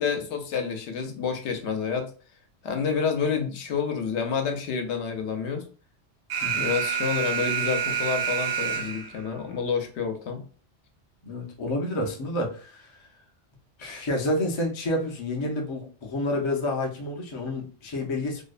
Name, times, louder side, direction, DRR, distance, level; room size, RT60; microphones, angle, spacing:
voice 1, 0.0-2.1 2.6-5.6 6.5-10.4, left 6 dB, 75° left, 5 dB, 0.9 m, -29 dB
Alarm, 6.3-9.3, right 8 dB, 65° right, 0.7 m, -28 dB
voice 2, 11.2-12.9 13.8-18.4, left 1 dB, 45° left, 1 dB, 0.4 m, -29 dB
2.7 x 2.0 x 2.3 m, 0.38 s
omnidirectional pair, 1.2 m